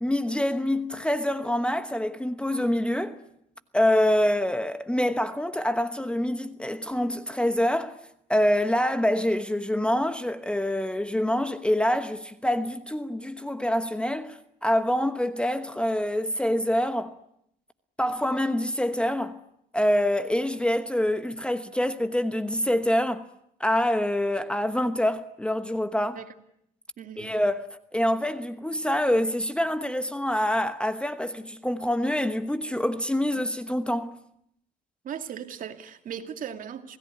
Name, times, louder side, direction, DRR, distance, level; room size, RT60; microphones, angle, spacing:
voice 1, 0.0-3.2 3.7-7.9 8.3-17.1 18.0-19.4 19.7-23.3 23.6-26.2 27.2-27.7 27.9-34.2, left 1 dB, 5° left, 1.1 m, -26 dB
voice 2, 27.0-27.4 35.0-37.0, right 8 dB, 55° right, 2.4 m, -38 dB
27.5 x 17.5 x 9.8 m
cardioid pair, 110°, 17 cm